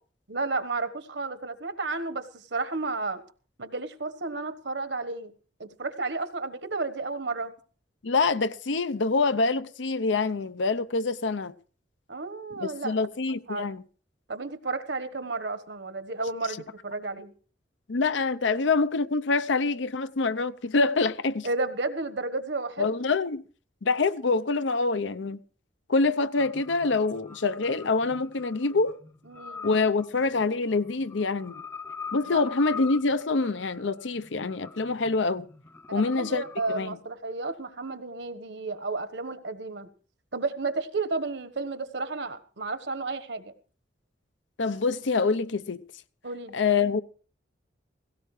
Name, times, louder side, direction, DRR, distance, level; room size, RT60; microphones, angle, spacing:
voice 1, 0.3-3.2 3.6-5.3 5.6-7.5 12.1-13.0 13.5-13.7 14.3-17.3 21.4-22.9 29.3-29.7 32.3-32.4 35.9-39.9 40.3-43.5 46.2-46.6, right 3 dB, 70° right, 1.2 m, -32 dB
voice 2, 8.0-11.5 12.6-13.8 17.9-21.5 22.8-23.4 23.8-25.4 25.9-29.0 29.6-31.6 32.1-35.5 35.9-36.4 36.7-37.0 44.6-45.8 46.5-47.0, left 3 dB, 80° left, 0.7 m, -26 dB
sound 1, 26.4-36.8, left 5 dB, 10° left, 0.6 m, -43 dB
17.5 x 17.0 x 3.2 m
head